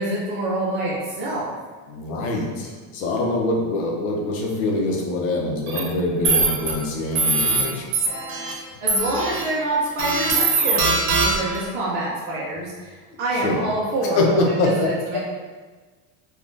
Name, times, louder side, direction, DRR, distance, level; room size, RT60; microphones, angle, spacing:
voice 1, 0.0-1.5 8.8-15.2, right 1 dB, 25° right, -6 dB, 0.4 m, -26 dB
voice 2, 1.9-7.9 13.1-13.6 14.2-15.2, left 2 dB, 75° left, 1 dB, 0.8 m, -24 dB
sound 1, 5.7-5.8 6.2-6.7 7.1-7.6 7.9-8.5 8.9-9.4 10.0-11.6, right 3 dB, 60° right, 0.8 m, -21 dB
3.5 x 2.3 x 2.6 m, 1.4 s
cardioid pair, 165°, 41 cm